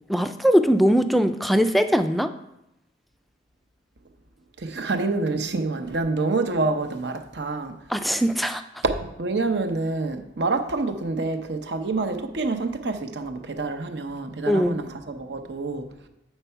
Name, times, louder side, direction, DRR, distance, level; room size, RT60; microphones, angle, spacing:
voice 1, 0.1-2.3 7.9-8.6 14.5-14.8, equal, ahead, 9 dB, 0.3 m, -20 dB
voice 2, 4.6-7.8 8.8-15.8, right 3 dB, 65° right, 7 dB, 0.7 m, -27 dB
8.1 x 4.4 x 5.6 m, 0.86 s
head